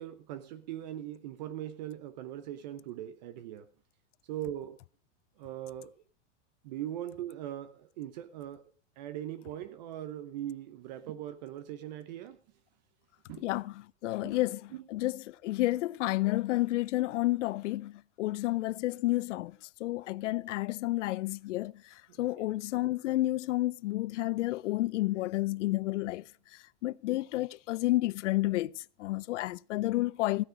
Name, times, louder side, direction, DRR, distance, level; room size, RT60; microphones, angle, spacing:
voice 1, 0.0-3.7 4.3-4.8 5.4-5.9 6.6-8.6 9.0-12.4 13.3-13.4 14.2-14.4 14.7-14.8 22.1-22.5, right 12 dB, 40° right, 0.7 m, -40 dB
voice 2, 13.4-30.5, left 17 dB, 85° left, 0.6 m, -31 dB
16.0 x 9.9 x 5.0 m
supercardioid pair, 180°, 35 cm